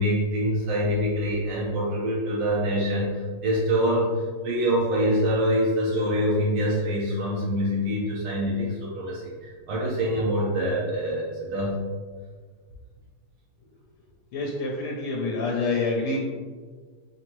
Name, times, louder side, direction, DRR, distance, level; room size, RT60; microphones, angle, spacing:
voice 1, 0.0-11.8, equal, 75° right, -5 dB, 1.7 m, -25 dB
voice 2, 14.3-16.2, left 3 dB, 80° left, -2 dB, 1.6 m, -27 dB
5.7 x 2.7 x 3.0 m, 1.5 s
omnidirectional pair, 2.4 m